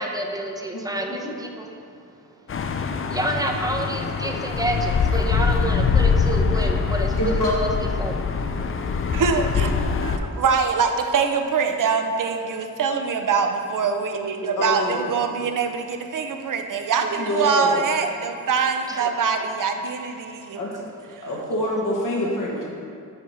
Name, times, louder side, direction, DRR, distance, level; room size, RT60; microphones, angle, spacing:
voice 1, 0.0-1.7 3.1-7.7 8.0-8.3 18.9-19.0, right 1 dB, 10° right, 2 dB, 0.6 m, -28 dB
voice 2, 0.7-1.3 7.2-7.5 10.1-10.3 14.6-15.2 17.2-17.8 20.5-20.8 21.2-22.6, left 1 dB, 65° left, -3 dB, 1.3 m, -26 dB
sound 1, 2.5-10.2, left 5 dB, 40° left, 0.4 m, -23 dB
voice 3, 9.1-20.6 21.1-21.3, right 5 dB, 65° right, 5 dB, 0.6 m, -24 dB
7.5 x 4.7 x 4.3 m, 2.4 s
wide cardioid pair, 115°, 35 cm